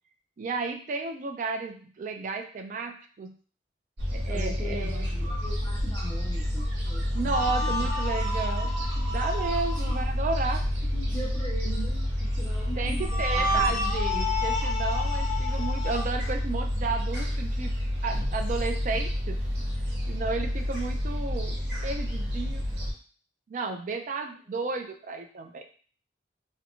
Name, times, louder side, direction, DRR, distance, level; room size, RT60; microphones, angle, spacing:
voice 1, 0.4-3.3 4.1-5.1 7.1-8.7 9.1-10.7 12.8-17.8 18.0-19.4 20.1-22.7 23.5-25.6, right 4 dB, 45° right, 5 dB, 0.3 m, -33 dB
Gull seagull, 4.0-22.9, equal, 70° right, 0.8 m, -29 dB
voice 2, 4.1-8.4 9.8-10.0 10.9-14.3 18.9-19.0 24.5-24.6, equal, 20° left, -2 dB, 0.5 m, -41 dB
sound 1, 7.3-10.0 13.0-16.0, left 2 dB, 50° left, 1.2 m, -31 dB
2.7 x 2.2 x 2.7 m, 0.41 s
head